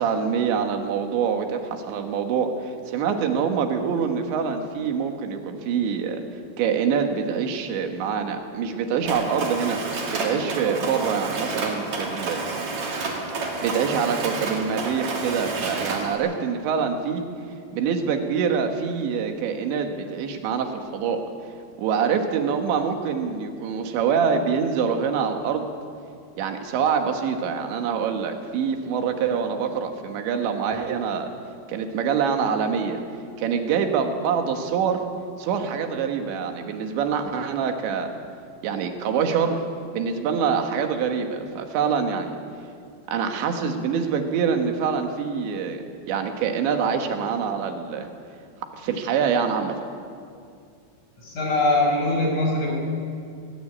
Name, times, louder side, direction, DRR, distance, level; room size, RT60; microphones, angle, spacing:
voice 1, 0.0-6.2 6.6-9.8 10.1-12.4 13.6-17.3 17.7-21.2 21.8-25.7 26.4-31.3 31.7-33.0 33.4-35.0 35.4-38.1 38.6-39.6 39.9-42.4 43.1-48.1 48.7-49.8, right 6 dB, 75° right, 5 dB, 3.8 m, -25 dB
Mechanisms, 9.1-16.2, right 3 dB, 40° right, 3.5 m, -30 dB
voice 2, 51.2-52.7, left 2 dB, 40° left, -2 dB, 6.7 m, -22 dB
19.5 x 18.5 x 8.6 m, 2.4 s
omnidirectional pair, 5.3 m